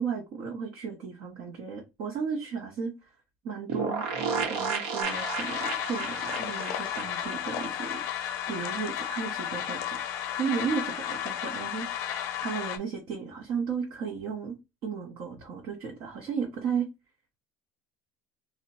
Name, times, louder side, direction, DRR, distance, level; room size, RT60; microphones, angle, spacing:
voice 1, 0.0-3.1 3.4-4.1 4.5-8.0 8.5-10.0 10.3-14.6 14.8-16.9, right 6 dB, 45° right, 0.7 m, -34 dB
sound 1, 3.7-8.3 8.6-8.7 8.9-9.0, right 5 dB, 70° right, 0.9 m, -33 dB
sound 2, 5.0-12.8, left 10 dB, 50° left, 0.5 m, -33 dB
2.7 x 2.1 x 4.0 m
cardioid pair, 180°, 7 cm